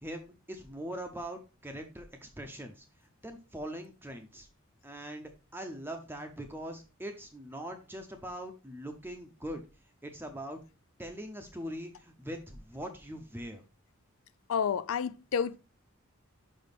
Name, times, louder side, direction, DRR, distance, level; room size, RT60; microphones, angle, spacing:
voice 1, 0.0-2.8 3.2-4.5 4.8-9.6 10.0-10.6 11.0-13.6, right 1 dB, 10° right, 0.7 m, -42 dB
voice 2, 14.5-15.6, left 7 dB, 75° left, 0.4 m, -30 dB
5.3 x 5.3 x 4.1 m
head